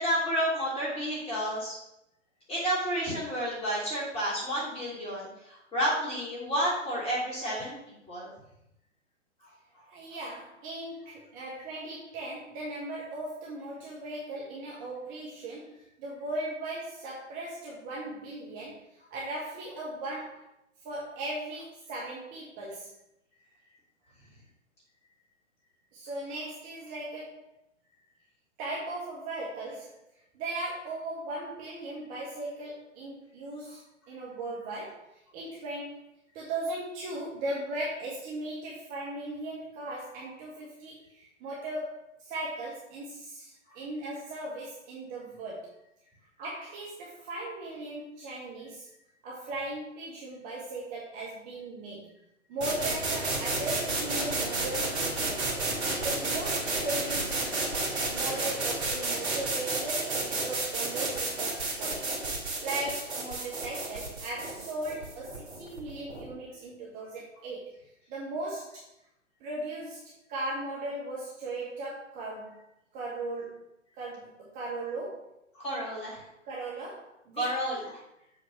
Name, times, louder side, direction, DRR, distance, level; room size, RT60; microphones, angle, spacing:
voice 1, 0.0-1.7 2.5-8.3 43.7-43.8 75.6-76.2 77.4-78.0, equal, 15° left, -5 dB, 3.1 m, -31 dB
voice 2, 9.9-20.4 20.8-22.9 25.9-27.4 28.6-29.9 30.3-33.8 34.1-36.0 36.3-45.7 46.4-48.9 49.2-52.1 52.5-55.6 56.0-57.4 58.1-62.1 62.6-67.7 68.1-68.9 69.4-72.6 72.9-73.7 74.0-75.3 76.4-77.5, right 2 dB, 20° right, -4 dB, 1.2 m, -38 dB
sound 1, 52.6-66.3, right 2 dB, 60° right, 2.6 m, -31 dB
7.4 x 3.9 x 5.7 m, 0.83 s
figure-of-eight pair, 120°, 37 cm